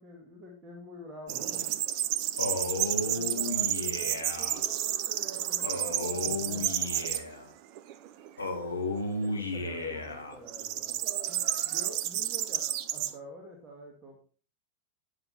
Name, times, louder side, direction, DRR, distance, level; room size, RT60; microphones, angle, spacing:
voice 1, 0.0-1.7 2.8-7.2 9.0-11.0 11.3-14.2, equal, 25° right, 0 dB, 2.5 m, -48 dB
sound 1, 1.3-7.2 7.8-8.3 10.5-13.1, right 13 dB, 45° right, 0.9 m, -31 dB
Male speech man speaking, 2.4-4.6 5.6-7.5 8.4-10.4, left 2 dB, 75° left, 1.9 m, -34 dB
11.5 x 8.9 x 4.3 m, 0.38 s
figure-of-eight pair, 90°, 0 cm